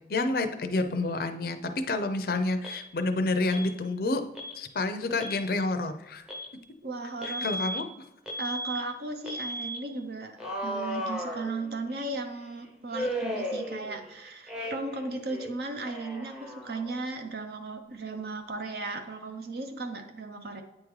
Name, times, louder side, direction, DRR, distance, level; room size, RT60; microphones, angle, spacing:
voice 1, 0.1-4.2 4.5-6.2 7.2-7.9, left 2 dB, 55° left, 7 dB, 0.5 m, -29 dB
Alarm, 2.6-2.8 3.5-3.7 4.3-4.6 5.1-5.4 6.3-6.5 7.2-7.8 8.3-8.8 9.3-9.8 10.4-11.9 12.9-14.1 14.5-15.0 15.3-17.0, equal, 5° right, 0.6 m, -35 dB
voice 2, 6.8-7.5 8.4-20.6, right 3 dB, 60° right, 5 dB, 0.6 m, -36 dB
8.8 x 3.7 x 3.1 m, 0.91 s
head